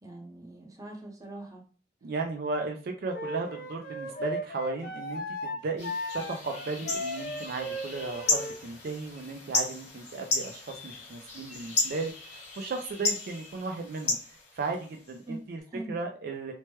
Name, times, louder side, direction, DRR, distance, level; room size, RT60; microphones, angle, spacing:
voice 1, 0.0-1.6 15.3-15.4 15.7-15.9, right 2 dB, 20° right, 0 dB, 0.7 m, -42 dB
voice 2, 2.0-14.2 14.5-15.6 15.9-16.5, right 3 dB, 55° right, 3 dB, 0.4 m, -35 dB
Wind instrument woodwind instrument, 3.1-8.6, left 1 dB, 55° left, 0.5 m, -36 dB
sound 1, 5.8-15.2, left 3 dB, 40° left, 0.9 m, -34 dB
3.0 x 2.2 x 3.0 m, 0.38 s
head